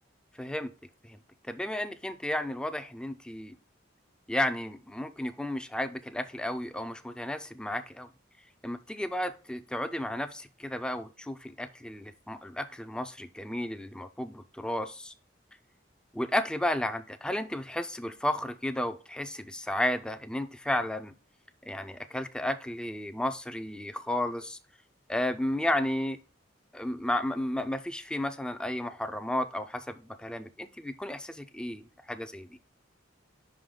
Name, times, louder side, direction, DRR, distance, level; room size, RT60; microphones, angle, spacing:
voice 1, 0.4-0.7 1.0-1.2 1.5-3.6 4.3-8.1 8.6-15.1 16.1-21.1 21.6-24.6 25.1-26.2 26.7-32.5, left 1 dB, 5° left, 9 dB, 0.4 m, -33 dB
5.5 x 5.0 x 3.7 m, 0.36 s
head